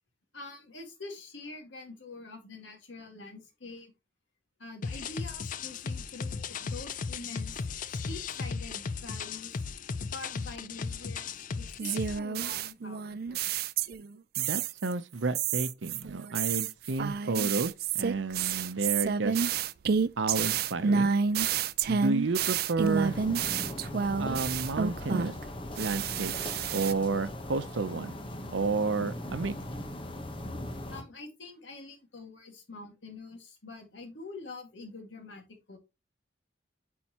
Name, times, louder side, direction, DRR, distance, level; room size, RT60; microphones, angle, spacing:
voice 1, 0.3-3.9 4.6-7.6 8.1-9.6 10.1-13.5 30.9-35.8, left 3 dB, 85° left, 1.9 m, -45 dB
sound 1, 4.8-12.2, left 5 dB, 45° left, 0.4 m, -36 dB
sound 2, 11.8-14.1 14.3-14.9 15.3-25.4 25.8-26.9, right 6 dB, 55° right, 0.4 m, -29 dB
voice 2, 14.4-19.4 20.2-21.1 21.9-23.2 24.2-25.4 25.8-26.3 26.7-28.1 28.5-29.5, right 3 dB, 90° right, 0.7 m, -31 dB
sound 3, 22.8-31.0, left 1 dB, 30° left, 1.0 m, -39 dB
8.7 x 4.6 x 2.9 m
head